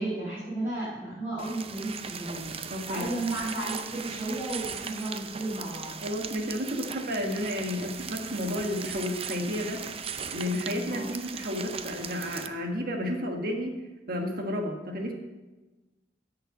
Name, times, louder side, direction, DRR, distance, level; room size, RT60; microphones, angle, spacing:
voice 1, 0.0-5.9 10.9-11.1, right 2 dB, 15° right, -10 dB, 4.6 m, -33 dB
sound 1, 1.4-12.5, right 6 dB, 35° right, 0.5 m, -38 dB
voice 2, 2.7-3.1 6.0-9.8 10.3-13.7 14.1-15.1, left 1 dB, 55° right, 3 dB, 1.5 m, -31 dB
9.8 x 6.7 x 7.6 m, 1.2 s
head